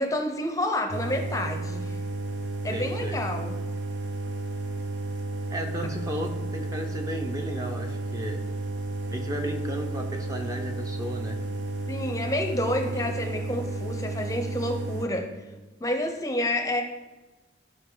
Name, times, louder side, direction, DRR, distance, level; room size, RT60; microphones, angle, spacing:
voice 1, 0.0-2.0 2.6-3.5 11.9-15.3 15.8-16.8, left 1 dB, 20° left, 5 dB, 0.6 m, -29 dB
sound 1, 0.9-15.1, right 2 dB, 75° right, 0.8 m, -32 dB
voice 2, 2.7-3.2 5.5-8.4 9.1-11.4 13.0-13.6, equal, 20° right, 3 dB, 0.7 m, -35 dB
12.0 x 5.3 x 3.8 m, 1.2 s
head